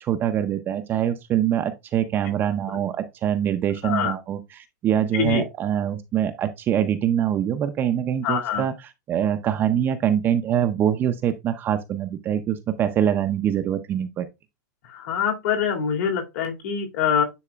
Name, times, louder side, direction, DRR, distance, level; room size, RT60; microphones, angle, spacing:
voice 1, 0.0-14.3, right 10 dB, 20° right, 0.5 m, -24 dB
voice 2, 3.8-4.1 5.1-5.4 8.2-8.6 14.9-17.2, left 7 dB, 55° left, 2.3 m, -24 dB
9.9 x 4.1 x 2.3 m
supercardioid pair, 155°, 9 cm